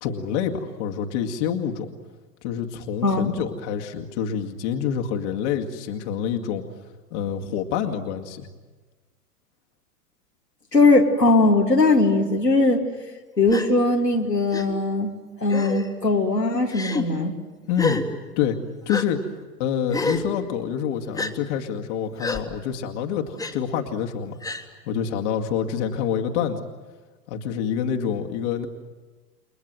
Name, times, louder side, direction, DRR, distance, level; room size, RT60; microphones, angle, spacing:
voice 1, 0.0-1.9 2.4-6.6 7.1-8.5 17.7-18.0 18.4-18.6 18.9-19.2 19.6-24.4 24.9-26.7 27.3-28.7, left 8 dB, 45° left, 2 dB, 2.2 m, -27 dB
voice 2, 10.7-12.8 13.4-15.1 15.4-17.3, left 2 dB, 90° left, 0 dB, 2.9 m, -19 dB
Gasp, 13.5-13.7 14.5-14.6 15.5-15.9 16.7-17.0 17.8-18.0 18.9-19.0 19.9-20.2 21.2-21.3 22.2-22.4 23.4-23.5 24.4-24.6, left 3 dB, 5° left, 1.8 m, -27 dB
30.0 x 23.0 x 7.8 m, 1.3 s
figure-of-eight pair, 95°, 47 cm